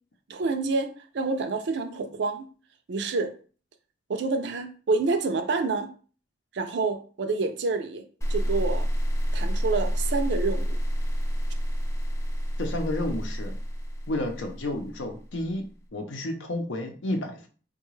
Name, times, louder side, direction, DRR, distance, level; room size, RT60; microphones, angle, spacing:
voice 1, 0.3-2.5 2.9-3.3 4.1-5.9 6.5-8.0 8.3-8.9 9.3-10.8, right 3 dB, 65° right, 7 dB, 0.4 m, -28 dB
sound 1, 8.2-15.3, equal, 15° left, 0.4 m, -28 dB
voice 2, 12.6-13.6 14.1-17.5, left 1 dB, 80° left, 4 dB, 0.7 m, -31 dB
3.6 x 2.2 x 3.1 m, 0.39 s
head